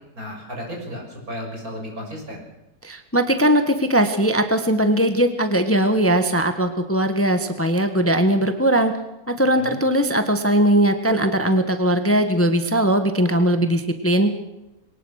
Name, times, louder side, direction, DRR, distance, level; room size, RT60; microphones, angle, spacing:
voice 1, 0.2-2.4 9.5-9.7, equal, 70° right, 1 dB, 7.2 m, -34 dB
voice 2, 2.8-8.9 9.3-14.3, right 1 dB, 10° left, 8 dB, 1.4 m, -19 dB
22.5 x 19.5 x 6.5 m, 0.94 s
omnidirectional pair, 1.6 m